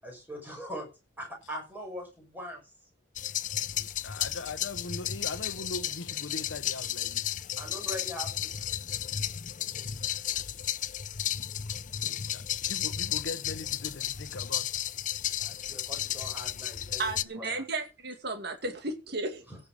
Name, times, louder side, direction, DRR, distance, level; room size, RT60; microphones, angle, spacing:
voice 1, 0.0-0.9 1.2-2.6 7.6-8.5 15.4-17.6 19.5-19.6, equal, 10° right, 6.2 m, -41 dB
sound 1, 3.2-17.2, left 10 dB, 45° left, 0.6 m, -33 dB
voice 2, 3.7-7.3 11.7-11.8 12.3-14.8, left 3 dB, 80° left, 0.9 m, -40 dB
voice 3, 17.0-19.4, right 2 dB, 60° right, 2.3 m, -34 dB
16.0 x 6.7 x 6.4 m
head